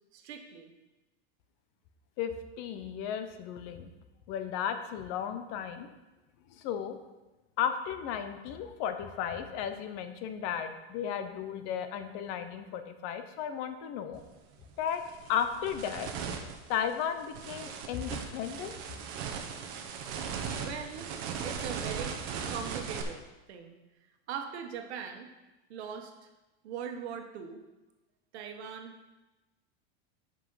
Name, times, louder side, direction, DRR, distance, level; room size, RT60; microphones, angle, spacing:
voice 1, 0.1-0.7 20.6-23.8 24.3-25.3 25.7-26.3 26.6-27.6 28.3-28.9, right 7 dB, 85° right, 5 dB, 1.3 m, -41 dB
voice 2, 2.6-3.9 4.3-5.9 6.5-7.0 7.6-14.2 14.8-15.0 15.3-16.1 16.7-18.7, left 8 dB, 40° left, 8 dB, 0.7 m, -34 dB
sound 1, 14.2-14.3 14.8-23.0, right 6 dB, 45° right, 1.0 m, -38 dB
7.8 x 5.5 x 5.6 m, 1.1 s
supercardioid pair, 165°, 32 cm